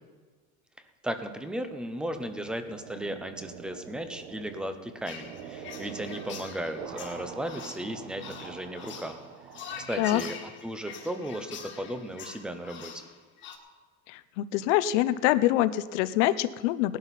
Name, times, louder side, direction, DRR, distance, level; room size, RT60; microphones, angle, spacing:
voice 1, 1.0-9.2 9.8-13.0, right 1 dB, 5° right, 8 dB, 0.5 m, -36 dB
sound 1, 1.7-10.4, right 8 dB, 75° right, 1.3 m, -45 dB
sound 2, 5.1-13.6, left 7 dB, 35° left, 1.5 m, -44 dB
voice 2, 14.1-17.0, left 14 dB, 85° left, 14 dB, 0.7 m, -25 dB
18.5 x 11.5 x 4.1 m, 1.4 s
cardioid pair, 175°, 35 cm